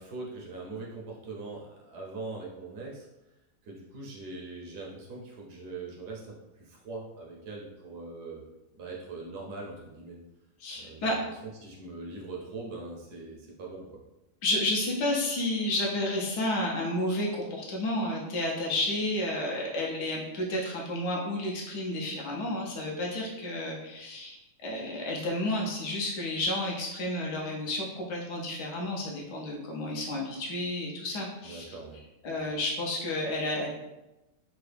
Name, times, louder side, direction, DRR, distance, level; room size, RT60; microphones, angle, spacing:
voice 1, 0.0-3.1 3.6-8.4 8.7-10.2 10.7-11.2 11.6-14.0 31.4-32.0, right 3 dB, 70° right, -2 dB, 1.1 m, -41 dB
voice 2, 10.6-11.2 14.4-31.6 32.2-33.7, left 1 dB, 70° left, -2 dB, 1.2 m, -31 dB
3.7 x 2.1 x 3.2 m, 0.96 s
omnidirectional pair, 2.0 m